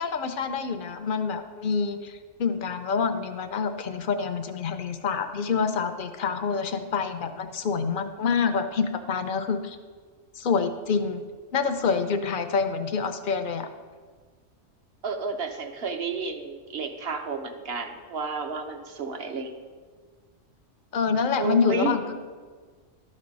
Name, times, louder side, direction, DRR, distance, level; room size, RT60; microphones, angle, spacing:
voice 1, 0.0-9.8 10.4-11.2 11.5-13.7 20.9-22.1, left 5 dB, 55° left, 8 dB, 0.6 m, -27 dB
voice 2, 15.0-19.5 21.4-22.0, right 4 dB, 55° right, 5 dB, 0.9 m, -31 dB
12.0 x 4.3 x 5.3 m, 1.5 s
omnidirectional pair, 1.3 m